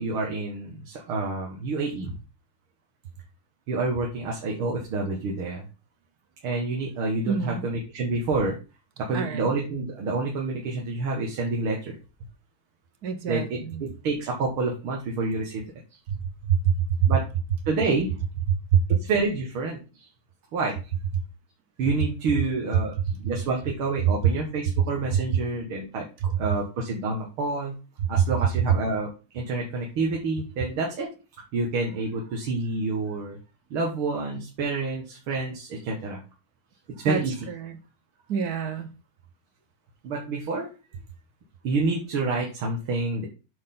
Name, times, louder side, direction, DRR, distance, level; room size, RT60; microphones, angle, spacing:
voice 1, 0.0-2.1 3.7-5.6 6.4-8.5 9.0-12.0 13.3-15.6 17.1-17.2 17.7-18.1 18.9-20.1 20.5-20.7 21.8-22.9 23.2-27.7 28.1-29.1 29.3-31.1 31.5-33.4 33.7-36.2 37.0-37.3 40.0-40.7 41.6-43.3, right 3 dB, 85° right, -1 dB, 2.5 m, -28 dB
voice 2, 7.3-7.6 9.1-9.5 13.0-13.9 16.1-16.2 16.5-16.7 17.0-17.1 18.5-19.0 21.1-21.2 26.2-26.3 28.2-28.3 37.0-37.8 38.3-38.9, right 8 dB, 55° right, 9 dB, 1.2 m, -25 dB
8.7 x 6.4 x 3.9 m, 0.32 s
omnidirectional pair, 2.3 m